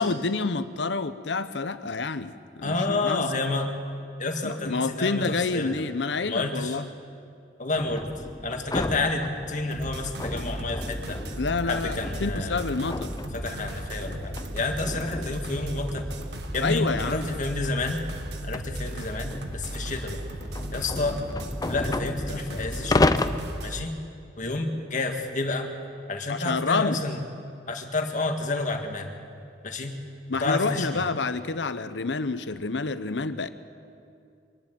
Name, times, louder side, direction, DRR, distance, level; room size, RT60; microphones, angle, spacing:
voice 1, 0.0-3.3 4.4-6.8 11.4-13.1 16.6-17.3 26.3-27.0 30.3-33.5, left 3 dB, 90° left, 12 dB, 0.8 m, -28 dB
voice 2, 2.6-3.7 4.2-5.3 5.5-5.9 6.3-6.8 7.6-8.1 8.4-11.2 11.6-12.7 13.3-16.1 16.5-18.0 18.4-20.2 20.7-21.2 21.7-23.2 23.6-23.9 24.4-25.7 26.1-27.2 27.7-29.1 29.6-30.0 30.4-31.0, left 2 dB, 45° left, 4 dB, 1.9 m, -29 dB
sound 1, 7.7-17.4 18.2-23.4, left 2 dB, 20° left, 0.6 m, -33 dB
sound 2, 9.7-23.8, right 1 dB, 70° right, 1.7 m, -36 dB
24.0 x 12.0 x 9.1 m, 2.5 s
head